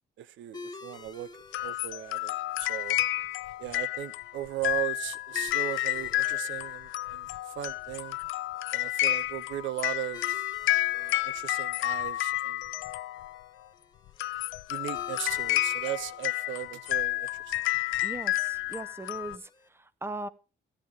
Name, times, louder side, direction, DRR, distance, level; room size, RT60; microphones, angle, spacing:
voice 1, 0.2-1.3 1.6-3.0 3.6-8.2 8.7-10.5 10.9-12.6 14.7-17.5, right 14 dB, 75° right, 0.5 m, -37 dB
sound 1, 0.5-19.7, left 3 dB, 20° left, 1.2 m, -52 dB
sound 2, 1.5-13.5 14.1-19.4, left 17 dB, 80° left, 0.5 m, -31 dB
voice 2, 18.0-20.3, right 2 dB, 10° right, 0.8 m, -39 dB
15.5 x 10.5 x 3.3 m
cardioid pair, 90°, 20 cm